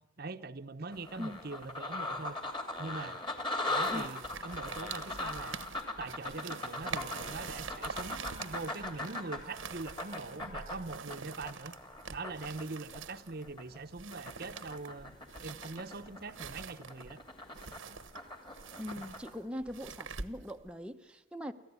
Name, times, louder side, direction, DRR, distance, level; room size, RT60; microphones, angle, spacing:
voice 1, 0.2-2.4 2.8-3.2 3.7-5.7 6.0-11.7 12.1-17.2, right 3 dB, 50° right, 9 dB, 0.9 m, -42 dB
sound 1, 0.9-13.8 14.1-19.3, left 2 dB, 25° left, 2.8 m, -40 dB
sound 2, 3.8-20.7, right 5 dB, 85° right, 1.2 m, -46 dB
voice 2, 18.7-21.5, equal, 5° right, 4 dB, 0.9 m, -41 dB
28.5 x 14.5 x 9.6 m, 1.1 s
head